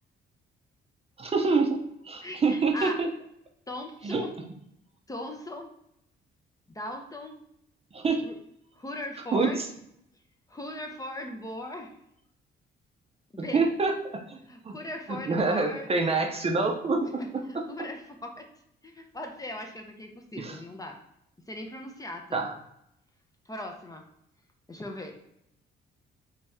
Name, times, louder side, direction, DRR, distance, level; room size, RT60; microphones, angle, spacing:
voice 1, 1.2-1.8 2.0-3.1 4.0-4.2 7.9-8.2 9.3-9.7 13.5-14.4 14.6-14.7 15.3-17.2 20.4-20.6 22.3-22.5, right 3 dB, 30° right, 3 dB, 0.6 m, -26 dB
voice 2, 2.2-3.0 3.7-4.3 5.1-5.7 6.7-7.4 8.2-8.4 8.7-9.6 10.5-11.9 13.3-13.6 14.5-15.9 17.2-18.5 18.8-21.0 21.5-22.5 23.5-24.1 24.7-25.2, left 1 dB, 15° left, 3 dB, 0.6 m, -39 dB
3.2 x 2.7 x 3.5 m, 0.77 s
cardioid pair, 90°, 20 cm